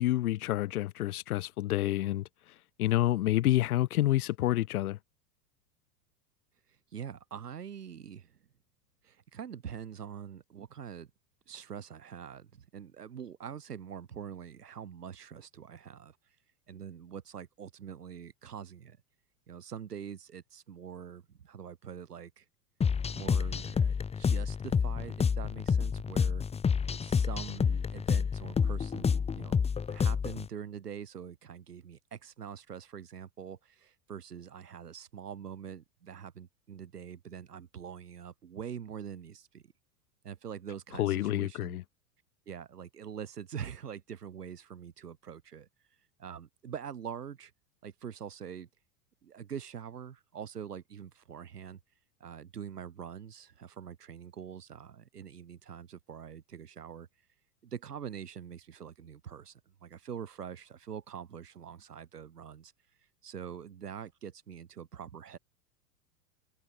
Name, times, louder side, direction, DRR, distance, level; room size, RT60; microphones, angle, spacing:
voice 1, 0.0-5.0 41.0-41.8, left 15 dB, 70° left, 1.8 m, -29 dB
voice 2, 6.9-8.4 9.0-11.1 11.5-16.2 16.7-19.0 19.5-22.4 23.1-26.4 26.8-39.6 40.2-41.8 42.5-45.7 46.2-47.5 47.8-48.7 49.2-51.8 52.2-57.1 57.6-62.7 63.2-65.4, right 8 dB, 85° right, 7.9 m, -44 dB
sound 1, 22.8-30.5, left 6 dB, 15° left, 0.9 m, -29 dB
hypercardioid pair, 100°, 46 cm